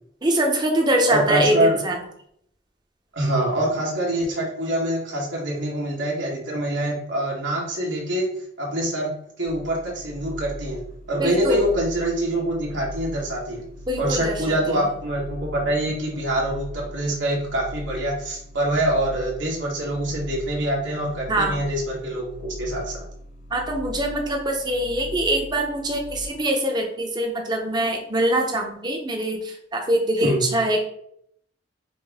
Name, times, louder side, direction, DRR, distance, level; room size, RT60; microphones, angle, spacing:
voice 1, 0.2-2.0 11.2-11.6 13.9-14.6 21.3-21.6 23.5-30.8, right 1 dB, 25° right, 2 dB, 0.7 m, -23 dB
voice 2, 1.1-1.8 3.1-8.3 8.6-10.8 11.1-13.7 14.0-23.0 30.2-30.4, right 1 dB, 85° right, -3 dB, 1.4 m, -25 dB
sound 1, 9.5-26.3, left 1 dB, 35° left, 0.4 m, -39 dB
5.3 x 2.1 x 3.4 m, 0.69 s
head